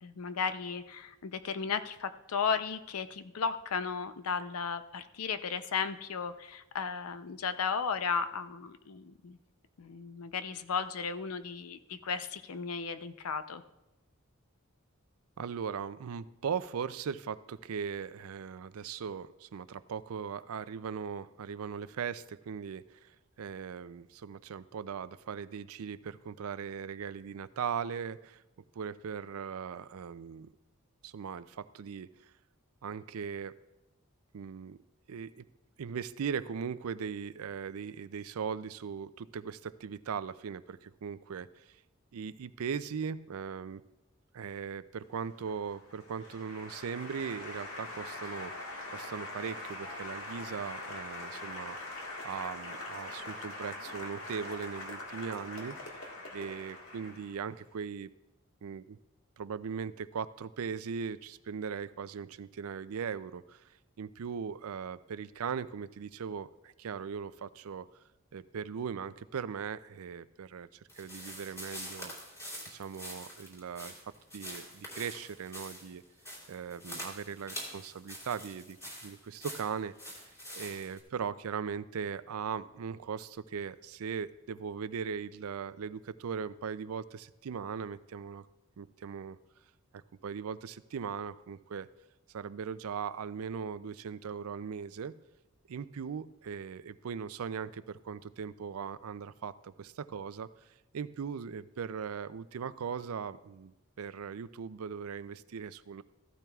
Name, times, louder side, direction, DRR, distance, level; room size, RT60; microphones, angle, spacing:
voice 1, 0.0-9.4 9.8-13.6, left 6 dB, 90° left, 11 dB, 0.6 m, -35 dB
voice 2, 15.4-28.4 28.8-30.5 31.0-32.3 32.8-33.6 34.3-34.8 35.1-35.4 35.8-41.8 42.1-43.8 44.3-51.8 52.2-55.8 56.3-58.1 58.6-59.0 59.4-63.6 64.0-67.9 68.3-70.7 71.0-72.1 72.7-73.9 74.3-76.0 76.5-78.8 79.0-80.2 80.5-88.5 88.8-89.4 89.9-91.9 92.3-95.1 95.7-100.5 100.9-106.0, right 6 dB, 80° right, 15 dB, 0.4 m, -39 dB
Applause, 45.1-57.6, left 2 dB, 70° left, 1.7 m, -43 dB
sound 1, 70.9-81.0, equal, 15° left, 3.2 m, -45 dB
15.0 x 12.0 x 2.4 m, 0.97 s
head